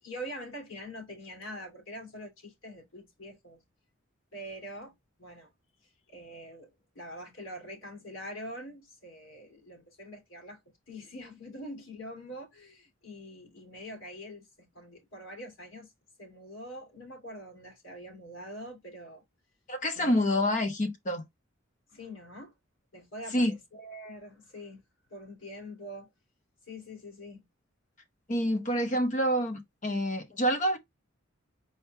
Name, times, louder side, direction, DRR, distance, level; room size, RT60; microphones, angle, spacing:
voice 1, 0.0-3.6 4.3-4.9 5.2-5.5 6.1-6.7 6.9-10.6 10.9-15.9 16.2-19.2 19.9-20.3 21.9-22.5 22.9-24.8 25.1-26.1 26.7-27.4, equal, 80° left, 2.6 m, -44 dB
voice 2, 19.7-21.2 23.3-23.5 28.3-30.8, equal, 35° left, 0.9 m, -27 dB
4.4 x 3.2 x 3.3 m
head